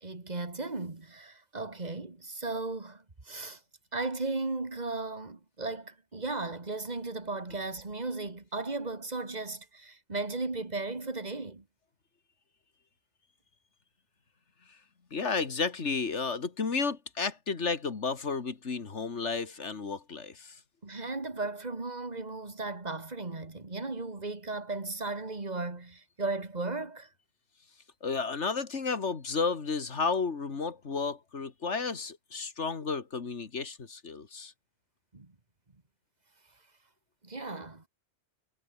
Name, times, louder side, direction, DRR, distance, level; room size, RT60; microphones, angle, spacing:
voice 1, 0.0-3.6 3.9-11.6 20.8-27.1 35.1-35.3 37.2-37.8, right 3 dB, 35° right, 2.5 m, -36 dB
voice 2, 15.1-20.6 28.0-34.5, left 4 dB, 80° left, 2.2 m, -32 dB
omnidirectional pair, 1.2 m